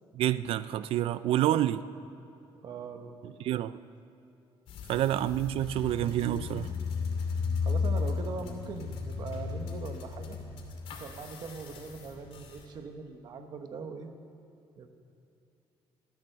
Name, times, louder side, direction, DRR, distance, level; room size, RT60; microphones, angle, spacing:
voice 1, 0.1-1.8 3.4-3.8 4.9-6.7, right 12 dB, 70° right, 15 dB, 0.4 m, -28 dB
voice 2, 1.3-1.6 2.6-3.4 7.3-10.4 10.9-14.1 14.8-14.9, right 5 dB, 45° right, 7 dB, 1.1 m, -41 dB
sound 1, 4.7-12.6, left 5 dB, 80° left, 2.5 m, -35 dB
14.5 x 13.5 x 6.7 m, 2.7 s
cardioid pair, 180°, 10 cm